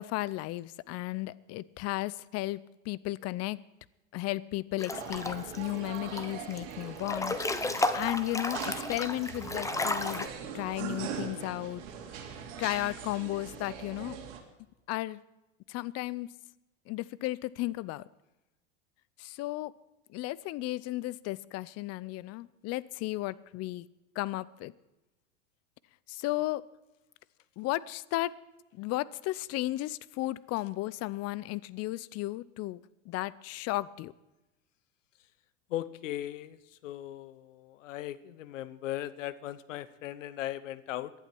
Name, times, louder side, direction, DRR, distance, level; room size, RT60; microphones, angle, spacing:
voice 1, 0.0-2.6 2.9-3.6 4.1-10.3 10.5-11.8 12.6-14.2 14.9-15.2 15.7-16.3 16.9-18.0 19.2-19.7 20.1-23.9 24.2-24.7 26.1-26.6 27.6-28.3 28.8-32.8 33.1-34.1, left 18 dB, 45° left, 20 dB, 0.6 m, -34 dB
Breathing / Bathtub (filling or washing) / Splash splatter, 4.8-5.6 5.9-6.6 7.0-10.3, left 2 dB, 10° left, 1.0 m, -33 dB
sound 1, 4.9-14.4, right 7 dB, 75° right, 2.8 m, -41 dB
voice 2, 35.7-41.1, left 13 dB, 85° left, 16 dB, 1.0 m, -38 dB
18.5 x 11.5 x 4.5 m, 1.0 s
supercardioid pair, 110°, 37 cm